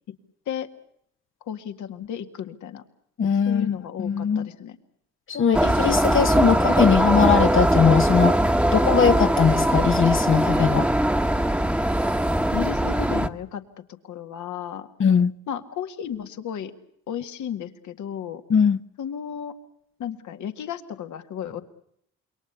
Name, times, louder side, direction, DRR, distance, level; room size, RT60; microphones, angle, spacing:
voice 1, 1.5-2.8 3.5-4.8 12.5-13.6 14.0-14.9 15.5-16.7 17.1-18.4 19.0-19.6 20.0-21.6, left 9 dB, 75° left, 2.0 m, -33 dB
voice 2, 3.2-4.5 5.3-8.4 8.7-10.9 15.0-15.3 18.5-18.8, left 6 dB, 40° left, 0.9 m, -20 dB
sound 1, 5.5-13.3, right 1 dB, 5° right, 1.2 m, -21 dB
27.5 x 23.0 x 7.0 m
cardioid pair, 90°, 30 cm